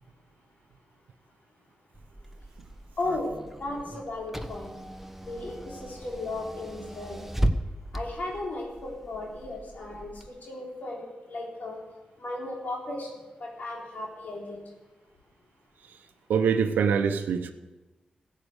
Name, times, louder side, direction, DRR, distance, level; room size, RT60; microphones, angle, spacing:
Car / Engine, 1.9-10.3, right 1 dB, 10° right, 1.1 m, -36 dB
voice 1, 3.0-3.3 3.6-4.7 5.3-7.3 7.9-10.1 10.4-11.8 12.2-13.1 13.4-14.6, left 2 dB, 70° left, 3.7 m, -35 dB
voice 2, 16.3-17.5, right 6 dB, 90° right, 0.8 m, -24 dB
14.5 x 8.4 x 6.4 m
supercardioid pair, 40°, 3 cm